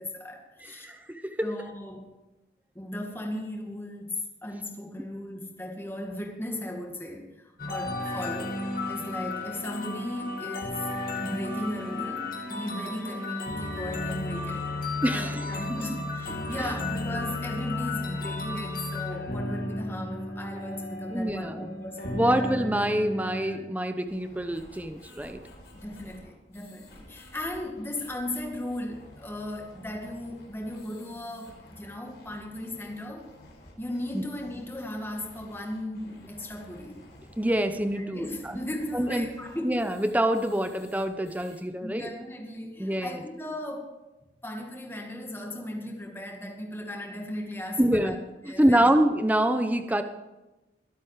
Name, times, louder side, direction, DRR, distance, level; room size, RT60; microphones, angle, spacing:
voice 1, 0.0-0.9 1.4-2.1 2.8-10.9 11.2-14.7 15.1-22.3 25.7-33.3 33.8-37.0 38.0-39.9 41.8-43.9 44.4-48.1 48.4-48.8, left 1 dB, 15° left, 1 dB, 2.1 m, -36 dB
voice 2, 0.8-1.4 15.0-15.4 21.1-21.7 22.1-25.4 34.1-34.2 37.4-38.5 38.9-39.3 39.6-42.1 42.8-43.2 47.8-48.2 48.4-50.0, right 1 dB, 10° right, 8 dB, 0.8 m, -26 dB
sound 1, 7.6-23.6, left 2 dB, 50° left, 2.5 m, -33 dB
sound 2, 24.0-41.6, left 1 dB, 75° left, 4.4 m, -52 dB
23.0 x 8.3 x 4.9 m, 1.0 s
head